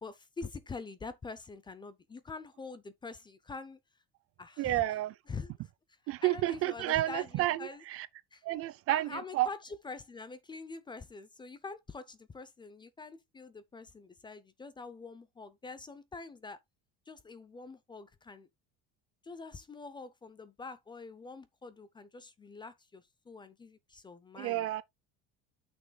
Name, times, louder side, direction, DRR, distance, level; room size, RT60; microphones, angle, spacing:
voice 1, 0.0-3.8 4.4-4.8 5.3-5.5 6.2-7.8 8.3-8.4 8.9-9.6 9.8-16.6 17.1-18.5 19.2-24.7, left 4 dB, 15° left, 0.5 m, -45 dB
voice 2, 4.6-5.1 6.1-8.1 8.4-9.5 24.4-24.8, right 15 dB, 45° right, 0.5 m, -31 dB
9.7 x 6.1 x 2.2 m
cardioid pair, 155°, 32 cm